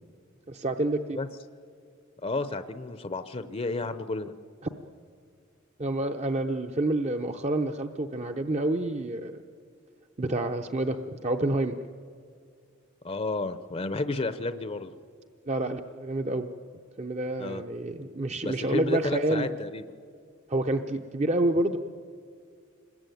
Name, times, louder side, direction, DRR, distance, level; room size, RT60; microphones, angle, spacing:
voice 1, 0.5-1.2 5.8-9.4 10.2-11.8 15.5-16.5 17.0-19.5 20.5-21.8, right 2 dB, 35° right, 6 dB, 0.7 m, -28 dB
voice 2, 2.2-4.3 13.0-14.9 17.4-17.6 18.4-19.8, left 3 dB, 30° left, 11 dB, 0.7 m, -31 dB
26.0 x 21.0 x 9.3 m, 2.2 s
head